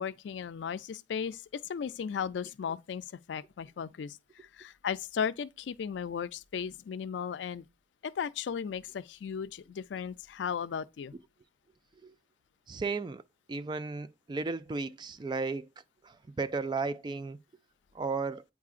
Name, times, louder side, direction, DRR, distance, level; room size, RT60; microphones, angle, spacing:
voice 1, 0.0-7.7 8.0-11.1, left 7 dB, 90° left, 0.4 m, -36 dB
voice 2, 12.7-13.2 13.5-15.7 16.0-17.4 17.9-18.4, right 4 dB, 25° right, 0.3 m, -34 dB
8.3 x 4.7 x 2.4 m
head